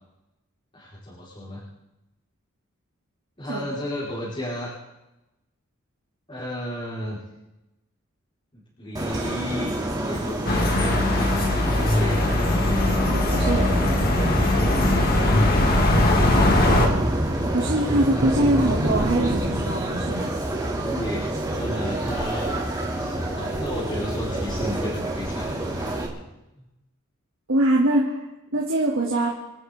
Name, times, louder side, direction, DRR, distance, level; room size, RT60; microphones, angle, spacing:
voice 1, 0.7-1.6 3.4-4.7 6.3-7.2 8.5-9.7 10.0-12.5 20.8-22.5 23.0-26.0, left 1 dB, 25° left, -10 dB, 4.8 m, -33 dB
sound 1, 8.9-26.1, right 1 dB, 20° right, 2.7 m, -27 dB
sound 2, 10.5-16.9, left 2 dB, 45° left, 2.5 m, -21 dB
voice 2, 13.1-14.2 16.4-17.0 17.5-20.3 27.5-28.1 28.5-29.3, right 1 dB, 70° right, -4 dB, 2.9 m, -23 dB
27.5 x 12.5 x 3.8 m, 0.96 s
head